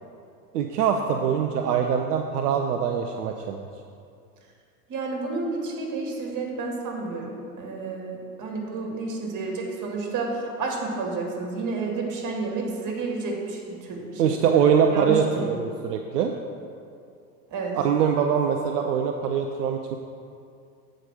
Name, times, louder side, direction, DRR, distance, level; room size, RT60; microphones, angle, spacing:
voice 1, 0.5-3.6 14.2-16.3 17.7-20.0, right 7 dB, 75° right, 4 dB, 0.7 m, -23 dB
voice 2, 4.9-14.5 14.9-15.5 17.5-17.8, right 3 dB, 40° right, 0 dB, 2.2 m, -31 dB
8.0 x 5.1 x 6.2 m, 2.4 s
hypercardioid pair, 90°, 47 cm